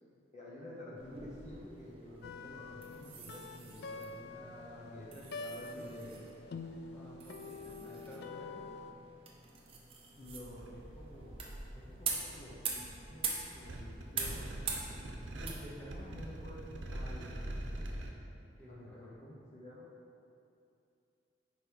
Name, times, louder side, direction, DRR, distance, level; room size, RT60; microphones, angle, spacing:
voice 1, 0.3-4.5 4.9-6.3 10.2-12.8 13.1-14.5 15.9-16.8 18.7-19.9, left 1 dB, 40° left, -5 dB, 0.8 m, -50 dB
sound 1, 1.0-17.8, right 5 dB, 30° right, 0.7 m, -45 dB
sound 2, 2.2-8.9, left 3 dB, 60° left, 0.3 m, -46 dB
voice 2, 4.3-5.0 5.7-5.8 6.9-8.7 15.4-16.1 16.9-17.9 18.6-19.1, equal, 5° left, -6 dB, 1.0 m, -52 dB
sound 3, 10.2-18.1, right 1 dB, 90° right, 0.7 m, -44 dB
5.2 x 4.8 x 4.6 m, 2.6 s
head